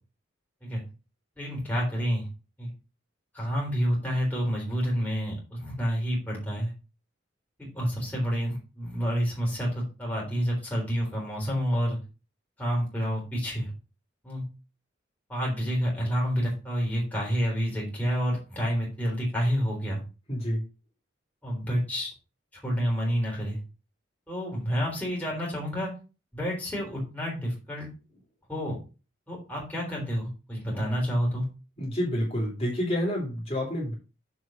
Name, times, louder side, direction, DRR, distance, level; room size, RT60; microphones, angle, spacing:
voice 1, 1.4-2.3 2.6-2.7 3.3-6.7 7.6-12.0 12.6-13.7 14.2-14.4 15.3-20.0 21.4-22.1 22.5-23.6 24.3-25.9 26.3-27.9 28.5-28.8 29.3-31.5, equal, 10° left, -4 dB, 3.7 m, -29 dB
voice 2, 20.3-20.6 31.8-33.9, equal, 30° left, -4 dB, 3.1 m, -28 dB
7.1 x 4.8 x 5.2 m, 0.32 s
head